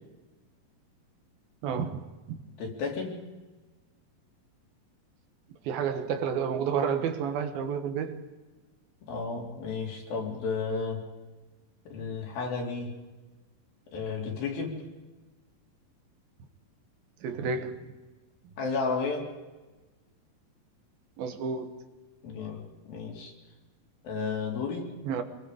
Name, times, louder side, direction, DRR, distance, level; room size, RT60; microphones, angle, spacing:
voice 1, 1.6-2.4 5.6-8.3 17.2-17.9 21.2-21.7 25.0-25.2, right 6 dB, 85° right, 3.3 m, -30 dB
voice 2, 2.6-3.2 9.0-11.1 11.9-13.0 13.9-14.8 18.6-19.3 22.2-23.3 24.0-24.9, left 4 dB, 85° left, 5.2 m, -33 dB
26.5 x 22.0 x 5.1 m
omnidirectional pair, 4.1 m